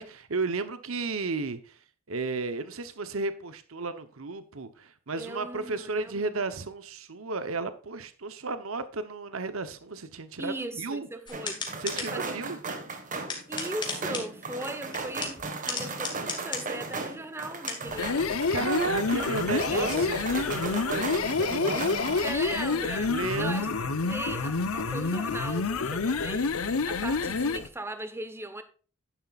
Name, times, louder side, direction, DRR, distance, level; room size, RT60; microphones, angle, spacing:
voice 1, 0.0-1.8 2.1-11.1 11.8-12.6 18.5-21.9 23.1-23.7, right 3 dB, 65° right, 1.0 m, -33 dB
voice 2, 5.2-6.4 10.4-12.6 13.5-18.5 19.7-20.0 22.2-23.7 24.0-26.5 26.8-28.6, right 1 dB, 10° right, 1.1 m, -38 dB
sound 1, 11.3-12.1 13.1-14.2 14.9-16.6 17.7-17.8, left 4 dB, 20° left, 2.2 m, -34 dB
sound 2, 11.3-22.3, right 3 dB, 40° right, 1.6 m, -36 dB
sound 3, 17.9-27.7, left 4 dB, 75° left, 0.8 m, -28 dB
11.0 x 10.0 x 2.5 m
head